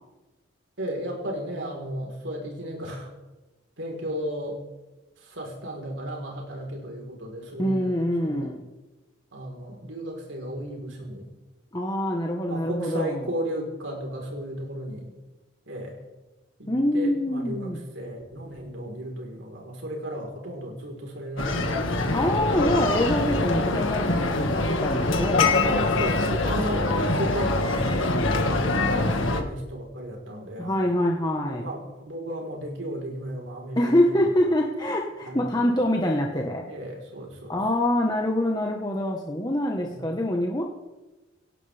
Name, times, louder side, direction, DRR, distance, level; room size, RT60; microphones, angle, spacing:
voice 1, 0.8-3.1 3.8-4.6 5.2-7.9 8.2-8.5 9.3-11.3 12.5-15.2 15.7-16.0 16.6-22.1 25.7-27.8 28.3-28.9 29.2-31.0 31.4-34.3 35.2-35.7 36.7-37.6 39.9-40.2, equal, 75° right, 0 dB, 4.1 m, -35 dB
voice 2, 7.6-8.6 11.7-13.2 16.7-17.8 22.1-25.9 30.6-31.7 33.7-36.7 37.5-40.6, left 1 dB, 20° left, 0 dB, 1.3 m, -25 dB
sound 1, 21.4-29.4, left 2 dB, 85° left, 1.8 m, -24 dB
18.0 x 17.5 x 3.5 m, 1.1 s
head